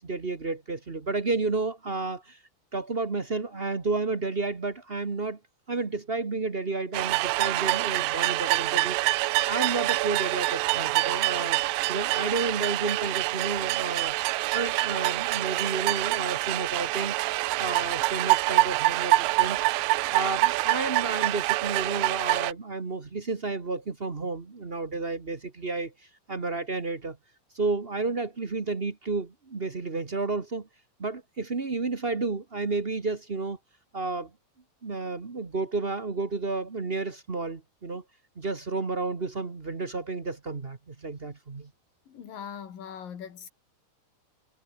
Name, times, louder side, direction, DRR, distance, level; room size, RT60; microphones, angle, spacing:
voice 1, 0.0-2.4 2.7-5.4 5.7-9.2 9.4-11.6 11.9-14.1 14.5-17.1 17.6-19.6 20.1-25.9 26.3-27.2 27.5-30.7 31.0-33.6 33.9-34.3 34.8-38.0 38.4-41.7, right 3 dB, 50° right, 0.6 m, -31 dB
sound 1, 6.9-22.5, right 20 dB, 85° right, 2.3 m, -26 dB
voice 2, 42.1-43.5, left 8 dB, 85° left, 4.5 m, -41 dB
omnidirectional pair, 3.9 m